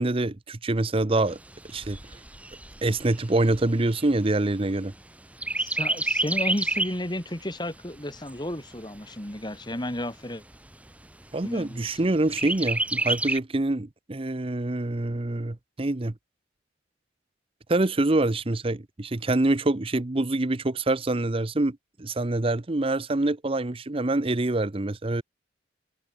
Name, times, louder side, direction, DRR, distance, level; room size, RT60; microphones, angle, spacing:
voice 1, 0.0-1.4 1.7-2.0 2.8-4.9 11.3-16.1 17.7-25.2, right 2 dB, 30° right, 0.7 m, -25 dB
Chirp tweet, 1.3-5.0 5.4-7.1 7.5-7.6 8.0-9.0 9.5-9.6 10.0-10.1 10.5-11.1 12.3-13.4, right 2 dB, 5° right, 1.4 m, -29 dB
voice 2, 5.6-10.4 11.4-12.0, left 1 dB, 25° left, 3.3 m, -33 dB
head